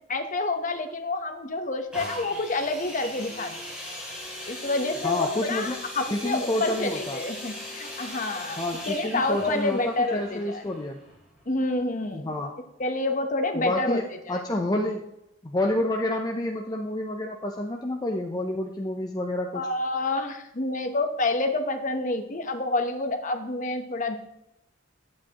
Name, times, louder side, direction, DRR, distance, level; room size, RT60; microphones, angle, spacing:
voice 1, 0.1-3.6 4.5-10.6 11.5-12.3 12.8-14.0 14.3-14.4 19.5-24.2, left 2 dB, 40° left, 7 dB, 0.9 m, -28 dB
sound 1, 1.9-11.6 12.3-12.4, left 1 dB, 5° right, 3.3 m, -39 dB
voice 2, 5.0-5.8 6.1-7.2 8.6-11.0 12.1-12.5 13.5-15.1 15.4-19.6, left 1 dB, 20° left, 1 dB, 0.6 m, -29 dB
10.0 x 8.6 x 2.9 m, 0.84 s
head